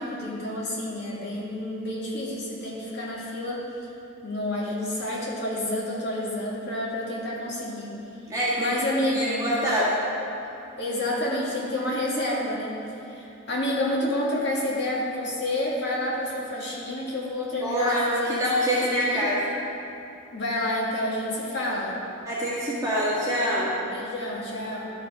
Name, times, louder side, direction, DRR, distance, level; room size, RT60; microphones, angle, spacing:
voice 1, 0.0-3.6 4.2-7.9 8.6-9.5 10.8-12.8 13.1-19.3 20.3-22.0 23.8-24.9, left 1 dB, 50° left, -5 dB, 1.8 m, -29 dB
voice 2, 8.3-8.7 9.1-9.9 17.6-19.4 22.2-23.7, equal, 15° right, -10 dB, 1.7 m, -25 dB
12.5 x 4.4 x 4.7 m, 2.9 s
head